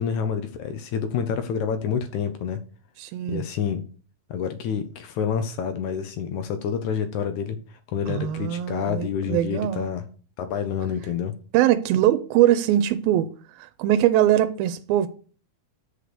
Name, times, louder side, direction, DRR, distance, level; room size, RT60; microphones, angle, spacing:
voice 1, 0.0-2.6 3.3-3.8 4.3-10.0 10.4-11.3, left 7 dB, 80° left, 1.7 m, -28 dB
voice 2, 3.0-3.4 8.1-9.9 11.5-15.1, right 12 dB, 85° right, 2.4 m, -22 dB
9.2 x 5.0 x 6.7 m
omnidirectional pair, 4.3 m